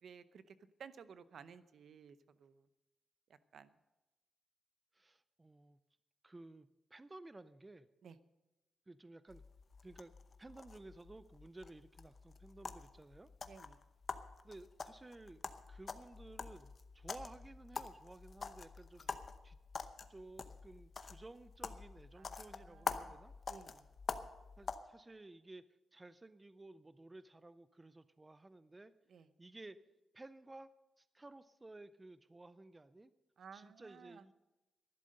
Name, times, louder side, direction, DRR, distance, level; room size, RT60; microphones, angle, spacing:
voice 1, 0.0-2.7 3.3-3.7 8.0-8.2 13.5-13.8 22.2-23.2 23.5-23.9 29.1-29.3 33.4-34.2, right 6 dB, 65° right, 14 dB, 0.7 m, -56 dB
voice 2, 4.9-5.8 6.2-7.9 8.9-9.4 9.8-10.1 10.4-13.3 14.4-15.4 15.7-19.6 20.1-23.3 24.6-25.6 25.9-28.9 29.4-29.8 30.1-30.7 31.0-33.1 33.5-34.3, right 2 dB, 15° right, 14 dB, 0.4 m, -55 dB
sound 1, 9.3-24.8, left 5 dB, 40° left, 0.8 m, -47 dB
11.5 x 11.5 x 6.5 m, 1.0 s
wide cardioid pair, 150°, 0 cm